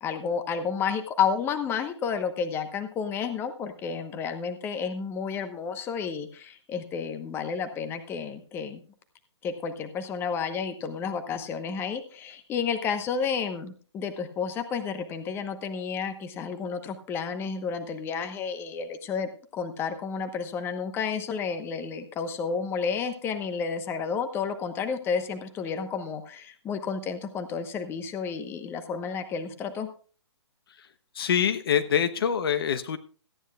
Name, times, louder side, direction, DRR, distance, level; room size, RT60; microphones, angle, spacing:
voice 1, 0.0-8.8 9.4-29.9, left 6 dB, 15° left, 9 dB, 1.0 m, -31 dB
voice 2, 31.1-33.0, left 8 dB, 55° left, 11 dB, 1.0 m, -25 dB
17.5 x 13.5 x 2.3 m, 0.40 s
hypercardioid pair, 140°, 15 cm